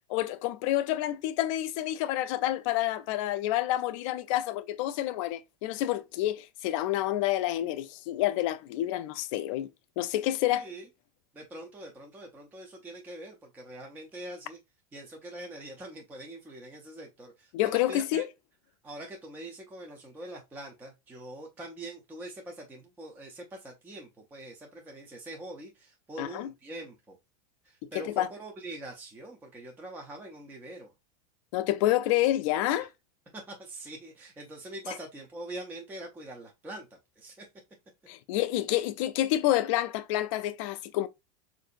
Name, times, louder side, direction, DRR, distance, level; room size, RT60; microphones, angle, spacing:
voice 1, 0.1-9.7 10.0-10.7 17.5-18.3 26.2-26.5 27.9-28.3 31.5-32.9 38.1-41.1, left 14 dB, 55° left, 0.4 m, -28 dB
voice 2, 10.5-10.9 11.3-14.6 14.9-18.2 18.8-27.2 27.6-30.9 33.3-36.9 37.2-37.5, right 1 dB, 10° right, 0.4 m, -43 dB
3.6 x 2.5 x 2.4 m
supercardioid pair, 135°, 20 cm